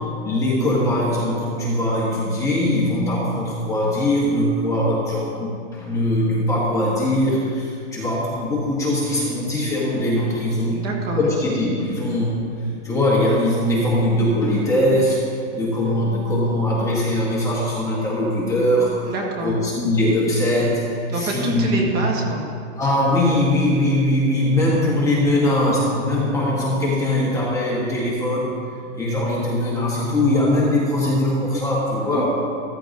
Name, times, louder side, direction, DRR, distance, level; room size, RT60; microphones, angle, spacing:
voice 1, 0.0-10.8 11.1-12.4 12.8-19.1 19.4-21.8 22.8-28.6 28.9-32.3, left 1 dB, 10° left, -5 dB, 1.2 m, -21 dB
voice 2, 10.7-11.2 19.1-19.6 21.1-22.4 32.1-32.3, right 2 dB, 25° right, 0 dB, 1.6 m, -26 dB
14.0 x 14.0 x 2.6 m, 2.3 s
supercardioid pair, 165°, 36 cm